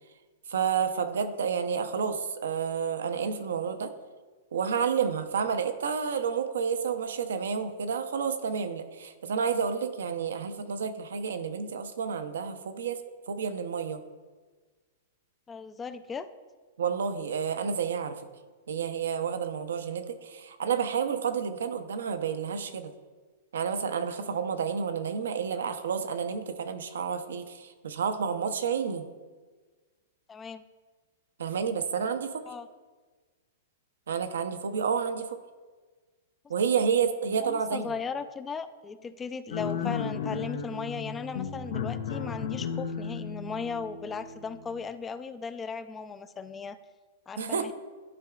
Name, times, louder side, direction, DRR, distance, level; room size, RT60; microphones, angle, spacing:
voice 1, 0.5-3.9 4.5-13.0 13.3-14.0 16.8-18.2 18.7-22.9 23.5-29.1 31.4-32.4 34.1-35.4 36.5-37.9 47.4-47.7, right 6 dB, 80° right, 9 dB, 0.6 m, -30 dB
voice 2, 15.5-16.3 30.3-30.6 32.5-32.7 37.4-46.8 47.3-47.7, left 5 dB, 15° left, 12 dB, 0.3 m, -37 dB
sound 1, 39.5-44.8, left 6 dB, 75° left, 0.6 m, -34 dB
11.0 x 4.7 x 2.3 m, 1.4 s
hypercardioid pair, 130°, 0 cm